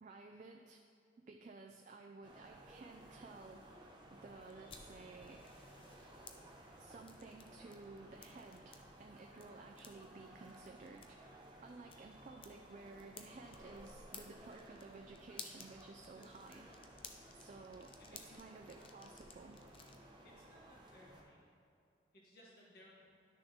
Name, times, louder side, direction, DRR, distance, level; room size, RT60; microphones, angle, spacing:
voice 1, 0.0-0.8 1.2-3.6 4.1-5.5 6.8-11.2 11.6-16.7 17.3-19.6, right 3 dB, 40° right, 3 dB, 0.3 m, -55 dB
sound 1, 2.2-21.2, right 1 dB, 25° right, 0.9 m, -58 dB
sound 2, 4.5-20.0, left 5 dB, 30° left, 0.5 m, -58 dB
voice 2, 18.0-18.5 20.2-21.4 22.1-23.1, left 1 dB, 55° left, -4 dB, 1.6 m, -62 dB
11.5 x 6.6 x 2.8 m, 2.4 s
head